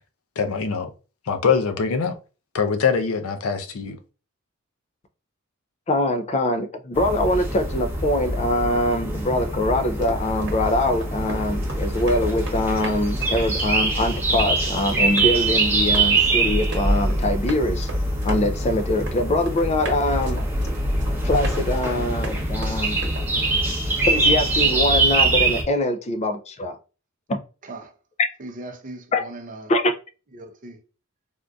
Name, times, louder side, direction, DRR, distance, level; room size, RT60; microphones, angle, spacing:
voice 1, 0.4-0.9 1.3-2.1 2.5-4.0, left 6 dB, 80° left, 0.5 m, -23 dB
voice 2, 5.9-17.9 18.2-20.4 21.2-23.0 24.1-26.8 27.3-27.4 29.1-29.2 29.7-29.9, left 1 dB, 30° left, 0.4 m, -23 dB
sound 1, 6.9-25.6, right 2 dB, 10° right, 0.8 m, -23 dB
Run, 9.9-23.3, right 2 dB, 60° right, 1.1 m, -38 dB
voice 3, 28.4-29.7 30.3-30.8, right 2 dB, 40° right, 0.6 m, -38 dB
3.5 x 2.6 x 2.3 m
head